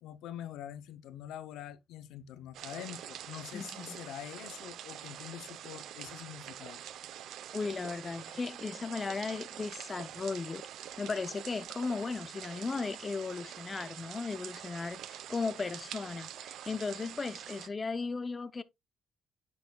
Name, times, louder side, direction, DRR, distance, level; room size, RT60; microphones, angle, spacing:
voice 1, 0.0-6.8, left 11 dB, 90° left, 0.8 m, -45 dB
sound 1, 2.5-17.7, right 11 dB, 80° right, 0.7 m, -45 dB
voice 2, 3.5-4.0 7.5-10.7 11.0-18.6, left 4 dB, 30° left, 0.6 m, -36 dB
9.4 x 7.0 x 2.3 m
cardioid pair, 90°, 0 cm